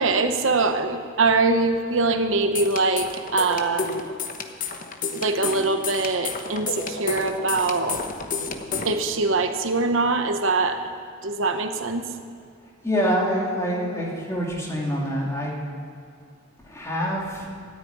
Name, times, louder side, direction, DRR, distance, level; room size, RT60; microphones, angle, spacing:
voice 1, 0.0-4.1 5.1-8.0 8.8-10.8 11.2-12.0, right 3 dB, 70° right, 7 dB, 1.0 m, -23 dB
sound 1, 2.4-8.9, left 4 dB, 45° left, 1.1 m, -31 dB
voice 2, 12.8-15.6 16.7-17.5, equal, 15° left, -3 dB, 2.8 m, -26 dB
13.5 x 9.0 x 9.4 m, 2.4 s
head